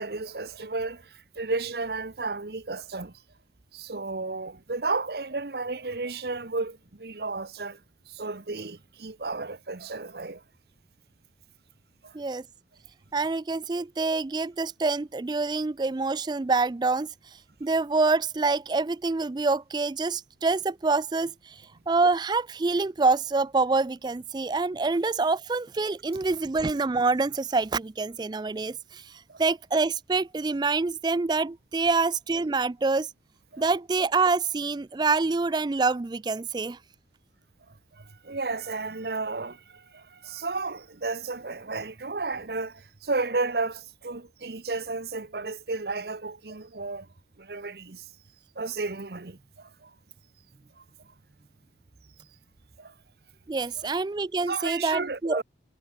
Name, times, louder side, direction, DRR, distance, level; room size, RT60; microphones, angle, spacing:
voice 1, 0.0-3.1 3.7-7.8 8.1-10.4 12.0-12.1 29.3-29.4 33.5-33.6 38.0-47.1 47.4-48.0 48.6-49.9 50.8-50.9 52.8-52.9 53.8-53.9 54.5-55.4, right 3 dB, 60° right, 1.0 m, -33 dB
voice 2, 13.1-17.1 17.6-33.1 33.6-36.8 53.5-55.4, right 3 dB, 25° right, 0.4 m, -26 dB
head